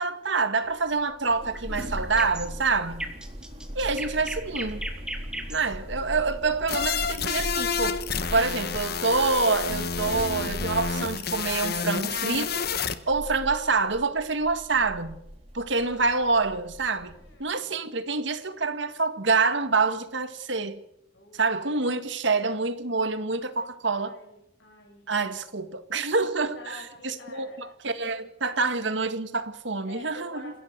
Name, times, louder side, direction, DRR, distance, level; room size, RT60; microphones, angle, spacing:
voice 1, 0.0-3.0 3.8-4.8 5.5-8.0 8.3-12.6 13.1-15.2 15.5-17.1 17.4-20.8 21.3-24.2 25.1-30.5, right 4 dB, 70° right, 1.9 m, -27 dB
sound 1, 0.6-17.4, equal, 30° right, 4.2 m, -39 dB
sound 2, 1.5-7.6, right 1 dB, 5° right, 2.5 m, -38 dB
voice 2, 5.6-6.0 17.0-17.8 21.1-22.1 23.4-25.1 26.4-28.2 28.4-28.8 29.9-30.6, left 2 dB, 70° left, 5.9 m, -48 dB
sound 3, 6.7-12.9, left 6 dB, 50° left, 1.4 m, -29 dB
28.5 x 16.5 x 6.9 m
head